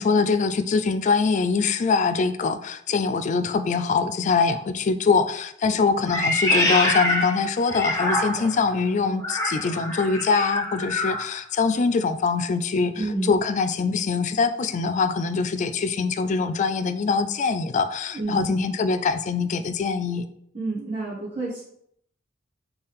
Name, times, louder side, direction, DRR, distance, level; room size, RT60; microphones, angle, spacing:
voice 1, 0.0-20.3, left 4 dB, 40° left, 0.3 m, -23 dB
Meow, 6.1-8.6 9.2-11.3, left 1 dB, 15° left, 0.9 m, -25 dB
voice 2, 13.0-13.3 18.1-18.5 20.5-21.6, right 2 dB, 30° right, 1.4 m, -29 dB
4.4 x 3.3 x 3.5 m
head